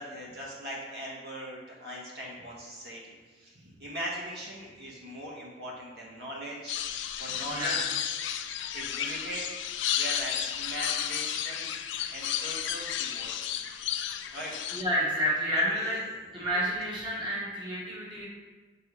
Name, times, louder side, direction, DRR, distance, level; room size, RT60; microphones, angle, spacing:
voice 1, 0.0-6.8 7.2-7.8 8.7-9.5 9.9-11.7 12.1-13.3 14.3-14.5 15.5-15.9, equal, 60° right, -5 dB, 1.4 m, -40 dB
sound 1, 6.7-14.8, left 10 dB, 90° left, 0.4 m, -33 dB
voice 2, 7.5-7.8 14.7-16.0 16.3-18.3, equal, 25° right, -7 dB, 1.3 m, -29 dB
6.7 x 4.6 x 3.2 m, 1.4 s
head